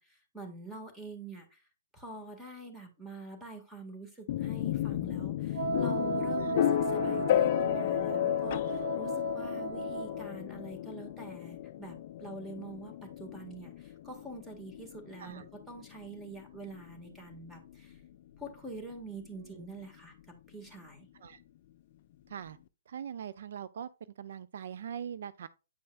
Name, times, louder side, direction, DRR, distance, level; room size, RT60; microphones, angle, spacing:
voice 1, 0.0-1.6 1.9-18.0 18.4-21.1, right 2 dB, 5° right, 1.7 m, -46 dB
sound 1, 4.3-18.1, left 12 dB, 45° left, 0.4 m, -33 dB
Wind instrument woodwind instrument, 5.5-10.3, right 4 dB, 20° right, 2.9 m, -35 dB
voice 2, 22.3-22.6 22.9-23.9 24.2-25.5, right 8 dB, 60° right, 0.4 m, -42 dB
8.9 x 5.3 x 2.3 m
hypercardioid pair, 135°, 0 cm